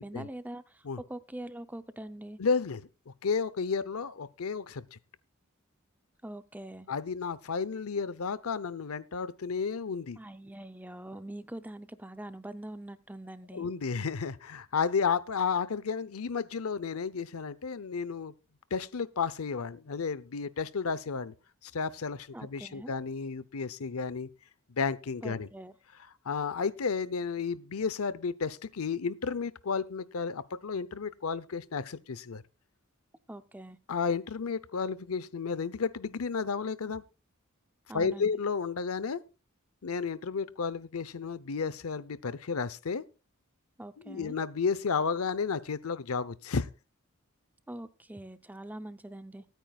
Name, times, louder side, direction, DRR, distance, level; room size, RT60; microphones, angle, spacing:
voice 1, 0.0-2.4 6.2-6.9 10.2-13.7 22.3-22.9 25.2-25.7 33.3-33.8 37.9-38.4 43.8-44.4 47.7-49.4, right 1 dB, 10° right, 0.6 m, -43 dB
voice 2, 2.4-5.0 6.9-10.2 13.5-18.3 18.7-21.3 21.6-24.3 24.8-25.5 26.2-32.4 33.9-37.0 37.9-39.2 39.8-43.0 44.0-46.7, left 5 dB, 90° left, 0.7 m, -32 dB
24.5 x 9.2 x 2.3 m
head